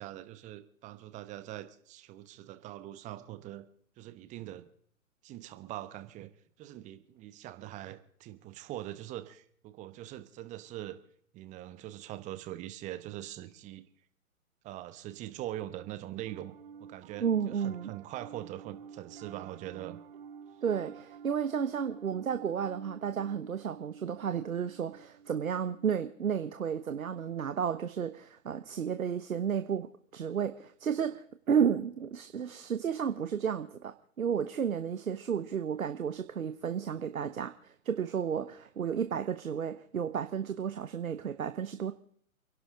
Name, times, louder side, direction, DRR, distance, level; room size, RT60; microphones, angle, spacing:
voice 1, 0.0-3.6 4.0-4.6 5.2-6.3 6.6-11.0 11.3-13.8 14.6-16.5 16.8-20.0, right 14 dB, 15° right, 12 dB, 1.0 m, -42 dB
Piano, 15.5-27.0, right 7 dB, 45° right, 1.1 m, -51 dB
voice 2, 17.2-17.9 20.6-41.9, right 7 dB, 75° right, 10 dB, 1.2 m, -32 dB
29.5 x 11.5 x 3.7 m, 0.63 s
figure-of-eight pair, 130°, 42 cm